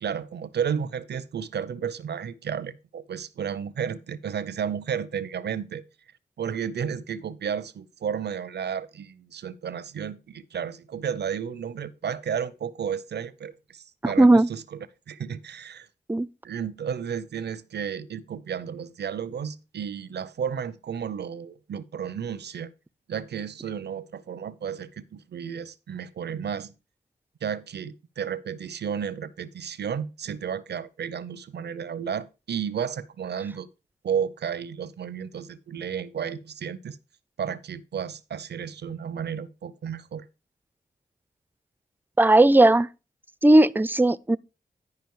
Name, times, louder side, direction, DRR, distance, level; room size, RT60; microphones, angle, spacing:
voice 1, 0.0-5.8 6.4-14.8 15.1-15.9 16.4-22.7 23.1-26.7 27.4-33.7 34.0-37.0 37.4-40.2, right 7 dB, 85° right, 0.6 m, -32 dB
voice 2, 14.0-14.5 16.1-16.3 42.2-42.9 43.4-44.4, right 1 dB, 10° right, 0.4 m, -17 dB
10.5 x 5.1 x 4.7 m
cardioid pair, 50°, 17 cm